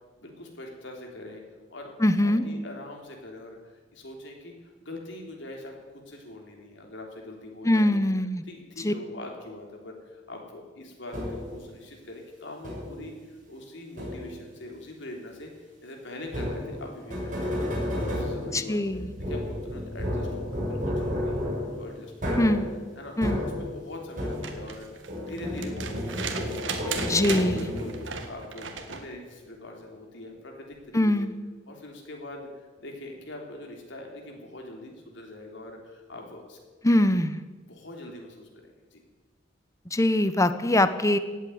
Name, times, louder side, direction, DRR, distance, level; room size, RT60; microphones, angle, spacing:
voice 1, 0.2-1.4 1.7-8.0 8.4-18.8 19.3-22.6 23.0-23.1 23.4-31.3 31.7-36.6 37.6-39.0, left 1 dB, 70° left, 1 dB, 3.4 m, -43 dB
voice 2, 2.0-2.4 7.6-8.4 8.8-8.9 18.5-19.1 22.4-22.7 23.2-23.4 27.0-27.7 30.9-31.3 36.8-37.4 39.9-41.2, left 1 dB, 15° left, 12 dB, 0.8 m, -23 dB
sound 1, 11.1-11.6 12.6-13.1 14.0-14.5 16.3-24.8 25.1-28.2, left 1 dB, 45° right, 6.8 m, -32 dB
sound 2, 24.2-29.1 30.7-30.8, right 5 dB, 75° right, 1.7 m, -36 dB
17.0 x 8.4 x 9.4 m, 1.3 s
head